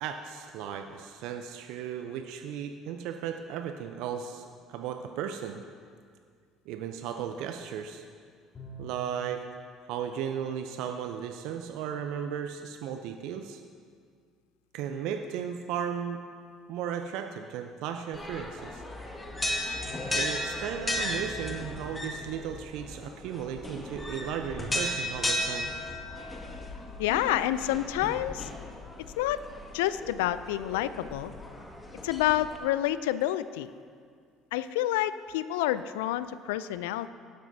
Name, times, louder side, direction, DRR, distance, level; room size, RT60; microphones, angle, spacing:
voice 1, 0.0-5.6 6.7-8.1 8.8-9.4 9.9-13.6 14.7-16.2 16.7-18.8 20.1-25.7, right 8 dB, 70° right, 6 dB, 0.6 m, -35 dB
Bowed string instrument, 8.5-9.4, equal, 35° left, 2.8 m, -45 dB
sound 1, 18.1-32.6, left 1 dB, 20° left, 1.9 m, -35 dB
voice 2, 27.0-28.5 29.1-29.4 29.7-31.3 32.0-33.7 34.5-37.1, left 13 dB, 80° left, 14 dB, 0.4 m, -28 dB
18.0 x 11.5 x 2.8 m, 2.1 s
hypercardioid pair, 60°, 0 cm